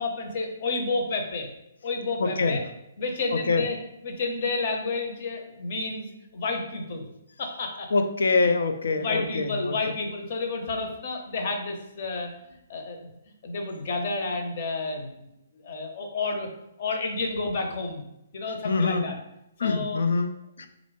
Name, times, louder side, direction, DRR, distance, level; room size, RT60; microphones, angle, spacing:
voice 1, 0.0-1.5 1.8-2.6 3.0-3.8 4.0-7.1 7.4-7.9 8.3-8.5 9.0-13.0 13.4-15.3 15.6-16.5 16.8-18.0 18.3-19.1 19.6-20.0, left 3 dB, 45° left, 3 dB, 0.8 m, -30 dB
voice 2, 2.2-2.6 3.3-3.6 7.9-9.7 18.6-19.1 19.6-20.3 20.6-20.7, left 3 dB, 85° left, 7 dB, 0.5 m, -24 dB
4.2 x 2.6 x 3.2 m, 0.85 s
hypercardioid pair, 160°, 0 cm